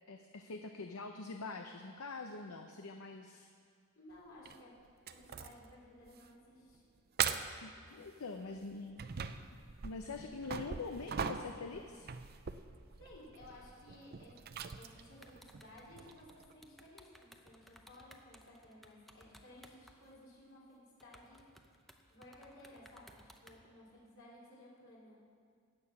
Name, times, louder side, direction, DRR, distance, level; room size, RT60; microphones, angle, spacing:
voice 1, 0.1-3.5 7.6-9.0 9.8-12.1, left 3 dB, 80° left, 5 dB, 0.7 m, -45 dB
voice 2, 4.0-4.8 5.1-6.8 13.0-14.4 14.8-21.4 22.1-25.2, left 1 dB, 65° left, -6 dB, 3.9 m, -57 dB
sound 1, 4.5-4.6 5.1-5.7 6.1-6.3 6.7-6.8 7.2-7.7 8.4-16.5, right 7 dB, 45° right, 0.5 m, -41 dB
sound 2, 15.2-20.1 20.5-20.6 21.0-23.6, equal, ahead, 0.7 m, -60 dB
14.0 x 8.6 x 6.0 m, 2.1 s
head